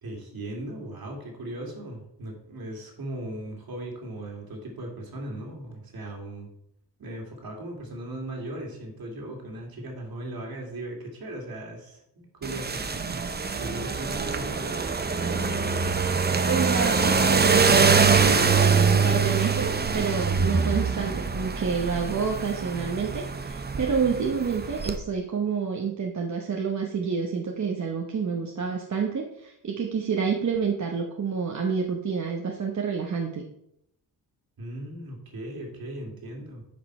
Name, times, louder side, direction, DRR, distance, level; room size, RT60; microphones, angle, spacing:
voice 1, 0.0-6.5 7.0-13.2 13.6-14.8 34.6-36.6, right 1 dB, 60° right, 0 dB, 2.5 m, -38 dB
sound 1, 12.4-25.0, right 5 dB, 25° right, 0.7 m, -24 dB
voice 2, 16.5-33.4, right 5 dB, 45° right, 0 dB, 1.0 m, -28 dB
9.6 x 5.2 x 4.4 m, 0.79 s
cardioid pair, 95°, 40 cm